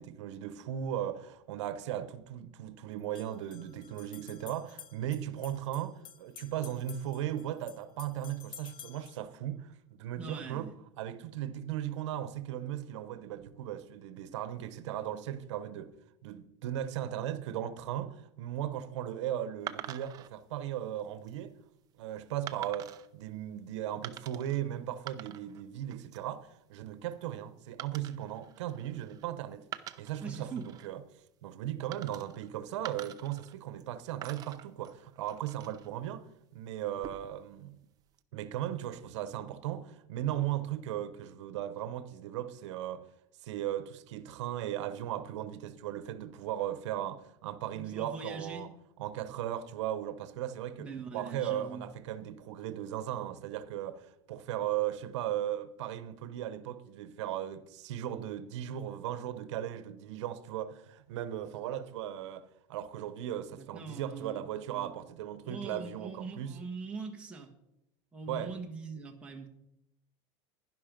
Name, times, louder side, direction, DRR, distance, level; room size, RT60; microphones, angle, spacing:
voice 1, 0.0-10.7 11.0-15.9 16.2-21.6 22.0-29.7 30.0-31.0 31.4-36.3 36.5-37.8 38.3-43.1 43.4-48.7 49.0-66.6 68.3-68.5, right 11 dB, 80° right, 1.0 m, -37 dB
sound 1, 1.4-1.5 3.0-9.2, left 9 dB, 30° left, 0.7 m, -52 dB
voice 2, 10.1-10.7 30.2-30.7 47.7-48.7 50.8-51.9 63.6-64.4 64.7-64.9 65.4-67.5 68.1-69.5, right 4 dB, 5° right, 1.3 m, -42 dB
sound 2, 19.7-20.3 21.0-21.3 22.5-23.1 24.0-24.6 24.9-25.6 25.9-26.3 27.8-29.2 29.6-30.9 31.9-32.5 32.8-33.9 34.2-35.9 36.8-37.4, right 12 dB, 25° right, 0.6 m, -45 dB
11.0 x 11.0 x 5.2 m
supercardioid pair, 170°, 15 cm